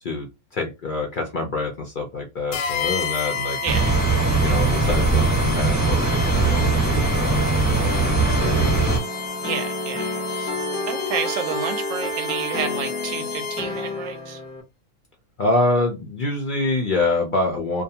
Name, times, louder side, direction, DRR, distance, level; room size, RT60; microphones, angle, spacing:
voice 1, 0.0-3.6 4.4-8.6 15.4-17.8, left 2 dB, 65° left, 0.5 m, -26 dB
sound 1, 2.5-13.9, left 5 dB, 85° left, 1.1 m, -31 dB
voice 2, 3.6-3.9 9.4-10.5 10.9-14.4, right 7 dB, 70° right, 0.9 m, -30 dB
sound 2, 3.7-9.0, right 3 dB, 10° right, 0.9 m, -20 dB
sound 3, 6.3-14.6, left 1 dB, 5° left, 0.5 m, -30 dB
2.5 x 2.3 x 2.7 m
omnidirectional pair, 1.5 m